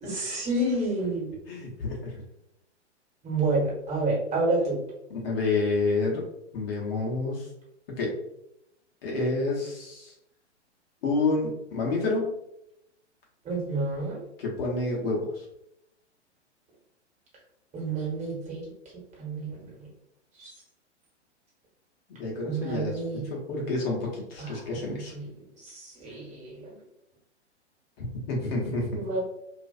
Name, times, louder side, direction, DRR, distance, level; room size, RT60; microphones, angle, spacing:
voice 1, 0.0-1.3 3.2-4.8 13.4-14.2 17.7-18.6 19.2-19.6 20.4-20.5 22.4-23.2 25.7-26.7 28.9-29.2, right 2 dB, 20° right, -4 dB, 1.2 m, -29 dB
voice 2, 1.5-2.2 5.1-6.3 6.5-7.5 7.9-8.2 9.0-10.1 11.0-12.3 14.4-15.5 22.1-25.1 28.0-29.0, left 3 dB, 55° left, -3 dB, 0.9 m, -29 dB
2.5 x 2.4 x 2.3 m, 0.80 s
hypercardioid pair, 115°, 35 cm